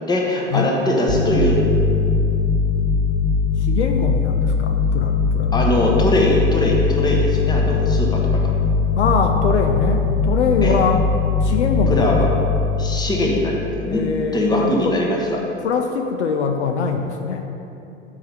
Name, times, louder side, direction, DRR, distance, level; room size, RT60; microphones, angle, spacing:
voice 1, 0.0-1.6 5.5-8.5 10.6-10.7 11.9-12.3 12.8-14.0 14.3-15.4, left 1 dB, 10° left, -1 dB, 1.1 m, -21 dB
sound 1, 1.1-14.2, left 4 dB, 30° left, 1.3 m, -20 dB
voice 2, 3.6-5.6 9.0-11.0 11.4-12.1 13.8-14.9 15.6-17.4, left 5 dB, 65° left, 4 dB, 0.6 m, -22 dB
7.0 x 4.9 x 5.4 m, 2.8 s
figure-of-eight pair, 90°, 37 cm